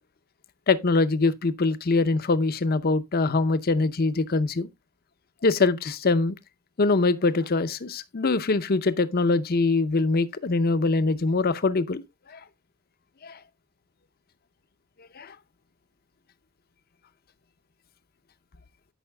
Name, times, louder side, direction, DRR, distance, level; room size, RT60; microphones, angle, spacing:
voice 1, 0.7-4.7 5.4-6.4 6.8-12.0 12.3-12.4 13.2-13.4 15.2-15.4, left 3 dB, 45° left, 0.6 m, -23 dB
13.0 x 5.6 x 2.2 m
head